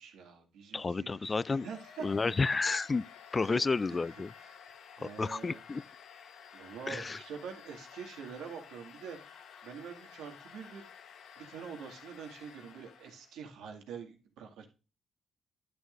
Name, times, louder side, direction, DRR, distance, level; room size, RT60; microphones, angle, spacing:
voice 1, 0.0-2.4 3.4-3.6 3.9-4.0 4.9-5.6 6.5-9.2 9.6-10.9 11.4-14.7, right 6 dB, 85° right, 2.1 m, -45 dB
voice 2, 0.7-1.7 2.0-3.1 3.3-4.3 5.0-5.8 6.9-7.2, left 4 dB, 30° left, 0.3 m, -31 dB
Domestic sounds home sounds, 1.3-13.4, left 7 dB, 65° left, 1.1 m, -53 dB
11.0 x 7.0 x 2.6 m
cardioid pair, 90°, 0 cm